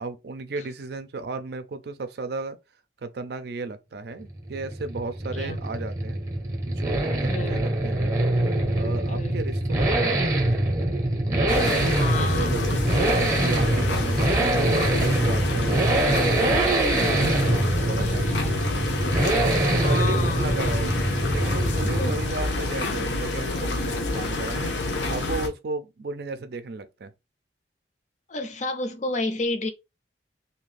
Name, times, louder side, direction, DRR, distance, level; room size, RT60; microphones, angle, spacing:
voice 1, 0.0-2.6 3.0-6.2 6.7-8.0 8.7-10.7 11.3-12.7 13.0-18.6 19.4-20.9 21.3-24.8 25.1-27.1, right 3 dB, 60° right, 0.4 m, -34 dB
Accelerating revving vroom, 4.2-22.4 22.7-22.8, right 1 dB, 20° right, 0.7 m, -24 dB
voice 2, 7.3-7.7 9.1-9.4 12.0-12.6 18.0-18.7 19.8-20.5 21.8-22.2 22.9-23.0 28.3-29.7, left 3 dB, 40° left, 0.5 m, -31 dB
sound 1, 11.5-25.5, left 2 dB, 80° left, 0.7 m, -28 dB
2.7 x 2.5 x 3.2 m
head